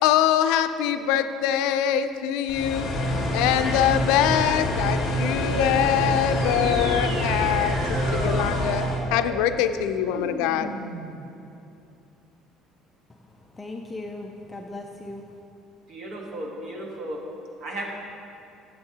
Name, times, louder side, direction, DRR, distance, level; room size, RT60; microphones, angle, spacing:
voice 1, 0.0-2.9 3.3-8.8 9.1-10.7, left 10 dB, 85° left, 10 dB, 0.4 m, -23 dB
sound 1, 2.5-9.0, left 1 dB, 40° left, 1.6 m, -26 dB
sound 2, 6.3-11.3, right 4 dB, 75° right, 0.8 m, -37 dB
sound 3, 7.0-9.1, equal, 90° right, 2.0 m, -37 dB
voice 2, 13.1-15.4, left 2 dB, 10° left, 2 dB, 0.3 m, -38 dB
voice 3, 15.9-17.2 17.6-17.9, right 1 dB, 40° right, -1 dB, 1.2 m, -34 dB
12.5 x 7.9 x 2.8 m, 2.7 s
cardioid pair, 170°, 0 cm